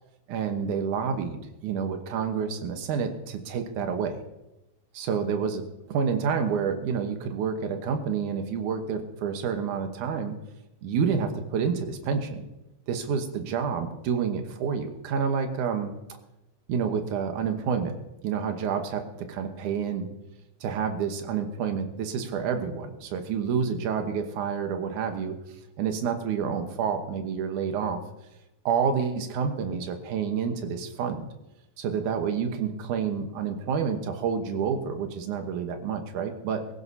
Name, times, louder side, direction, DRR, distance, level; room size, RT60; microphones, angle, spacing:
voice 1, 0.3-4.2 4.9-10.4 10.8-12.5 12.9-16.0 16.7-18.0 18.2-20.1 20.6-25.3 25.8-28.0 28.7-31.3 31.8-36.6, right 6 dB, 90° right, 6 dB, 2.6 m, -29 dB
17.5 x 16.5 x 2.8 m, 0.94 s
omnidirectional pair, 3.5 m